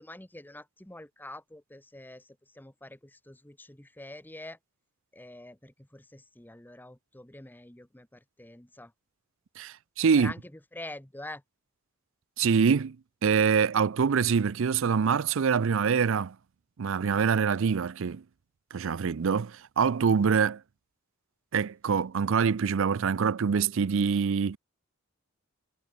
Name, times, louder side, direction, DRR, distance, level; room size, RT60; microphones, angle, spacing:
voice 1, 0.0-2.3 2.5-4.6 5.1-8.9 10.2-11.4, left 1 dB, 10° left, 1.1 m, -45 dB
voice 2, 9.6-10.3 12.4-13.0 13.2-16.4 16.8-18.2 18.7-20.6 21.5-24.6, right 6 dB, 65° right, 0.5 m, -25 dB
head